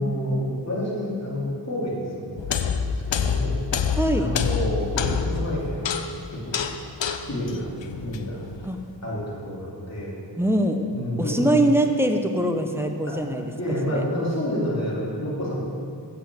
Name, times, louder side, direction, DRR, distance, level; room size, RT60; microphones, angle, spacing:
voice 1, 0.0-6.0 6.3-6.5 7.2-7.7 8.0-8.4 9.0-10.2 10.9-11.6 13.1-13.2 13.6-15.6, equal, 35° left, -6 dB, 2.9 m, -29 dB
sound 1, 2.4-8.7, left 6 dB, 85° left, 0.6 m, -27 dB
voice 2, 4.0-4.3 8.6-8.8 10.4-10.9 11.2-13.5 13.9-14.0, right 1 dB, 5° right, 5 dB, 0.8 m, -23 dB
7.7 x 6.6 x 7.8 m, 2.3 s
wide cardioid pair, 60°, 43 cm